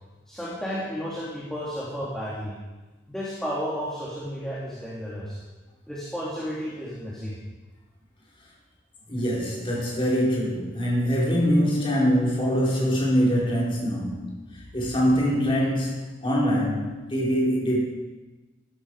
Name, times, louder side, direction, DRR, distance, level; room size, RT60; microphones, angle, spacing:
voice 1, 0.3-2.6 3.1-5.4 5.9-7.4, equal, 5° left, -8 dB, 3.0 m, -32 dB
voice 2, 9.1-17.8, equal, 25° left, -5 dB, 4.7 m, -24 dB
15.0 x 14.0 x 4.9 m, 1.2 s
head